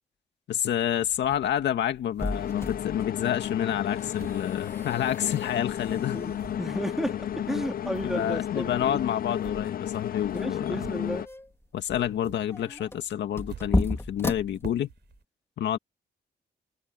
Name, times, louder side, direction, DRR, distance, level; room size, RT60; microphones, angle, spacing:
voice 1, 0.5-6.2 8.0-10.8 11.7-14.9 15.6-15.8, left 10 dB, 85° left, 2.0 m, -29 dB
sound 1, 0.9-3.0 3.5-5.6 5.9-11.6 11.8-15.2, right 9 dB, 80° right, 4.1 m, -50 dB
sound 2, 1.1-15.2, left 2 dB, 15° left, 1.9 m, -36 dB
sound 3, 2.3-11.3, left 10 dB, 55° left, 0.5 m, -33 dB
voice 2, 5.9-9.1 10.3-11.2, equal, ahead, 2.5 m, -33 dB
cardioid pair, 70°, 18 cm